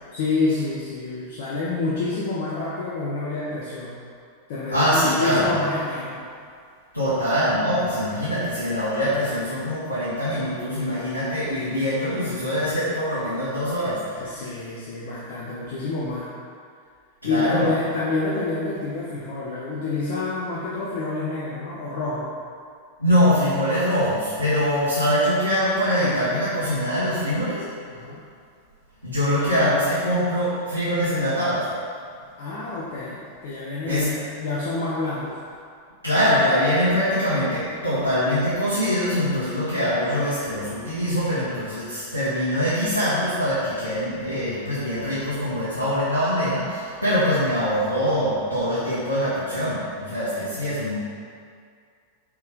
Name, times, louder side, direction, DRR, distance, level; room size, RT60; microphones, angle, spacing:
voice 1, 0.1-4.0 4.5-6.2 14.2-16.3 17.2-22.3 27.9-28.2 32.4-35.3, left 3 dB, 50° left, -7 dB, 0.9 m, -28 dB
voice 2, 4.7-5.5 6.9-14.6 15.0-15.1 17.2-17.7 23.0-27.7 29.0-31.7 33.8-34.2 36.0-51.0, equal, 85° left, -11 dB, 1.4 m, -23 dB
5.9 x 4.7 x 3.8 m, 2.2 s
figure-of-eight pair, 90°, 0 cm